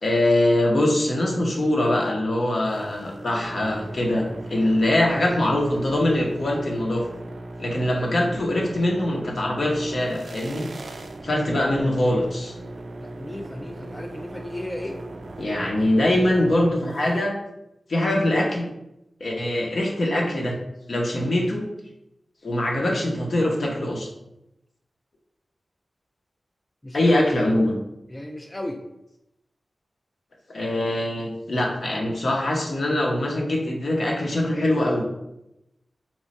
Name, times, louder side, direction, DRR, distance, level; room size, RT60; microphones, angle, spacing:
voice 1, 0.0-7.1 7.6-10.7 11.2-12.5 15.4-17.4 17.9-18.7 19.2-20.5 20.9-21.7 22.4-24.1 26.9-27.7 30.5-35.1, left 1 dB, 65° left, -1 dB, 0.8 m, -23 dB
sound 1, 2.6-17.2, right 2 dB, 65° right, 0.3 m, -38 dB
voice 2, 13.0-15.0 26.8-27.1 28.1-28.8, left 1 dB, 20° left, 3 dB, 0.3 m, -35 dB
3.0 x 2.2 x 4.0 m, 0.88 s
wide cardioid pair, 70°, 0 cm